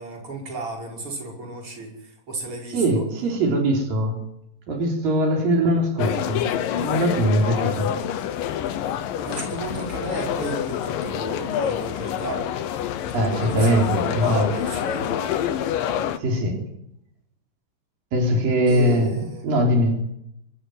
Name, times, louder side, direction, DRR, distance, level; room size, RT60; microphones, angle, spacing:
voice 1, 0.0-3.0 9.2-12.5 13.3-15.2 18.7-19.5, right 2 dB, 40° right, 0 dB, 6.8 m, -33 dB
voice 2, 2.7-4.2 4.7-6.5 6.7-7.9 13.1-14.4 16.2-16.6 18.1-20.0, equal, 90° right, 2 dB, 5.7 m, -21 dB
sound 1, 6.0-16.2, left 10 dB, 90° left, 2.9 m, -27 dB
25.5 x 15.0 x 9.6 m, 0.79 s
omnidirectional pair, 3.9 m